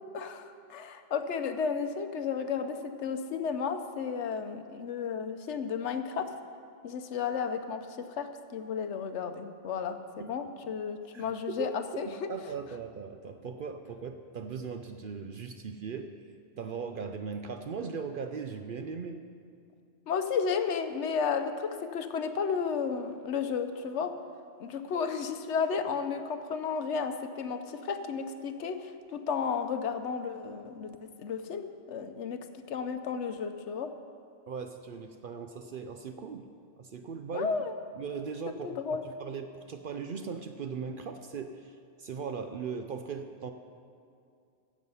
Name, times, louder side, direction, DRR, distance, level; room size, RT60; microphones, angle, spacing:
voice 1, 0.1-6.3 6.8-7.9 8.2-12.3 20.1-24.1 24.6-32.4 32.7-33.9 37.3-37.7 38.6-39.0, left 6 dB, 70° left, 8 dB, 1.0 m, -33 dB
voice 2, 11.1-11.8 12.1-16.1 16.5-19.2 34.5-36.5 36.8-37.5 37.9-38.7 39.2-43.5, right 6 dB, 60° right, 7 dB, 0.6 m, -39 dB
15.5 x 7.4 x 5.5 m, 2.4 s
omnidirectional pair, 1.2 m